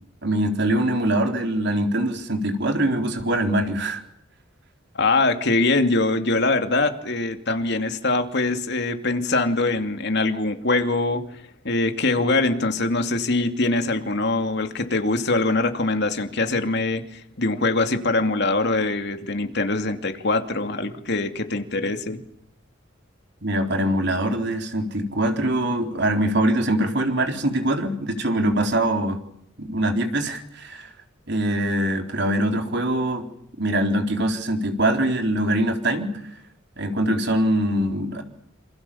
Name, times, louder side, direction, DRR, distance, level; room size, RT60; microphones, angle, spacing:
voice 1, 0.2-4.0 23.4-29.2 29.6-30.9 31.3-33.3 33.6-36.2 36.8-38.2, right 1 dB, 55° right, 5 dB, 4.1 m, -23 dB
voice 2, 4.9-11.2 11.6-22.2, left 2 dB, 55° left, 7 dB, 2.6 m, -23 dB
27.5 x 27.5 x 7.2 m, 0.70 s
head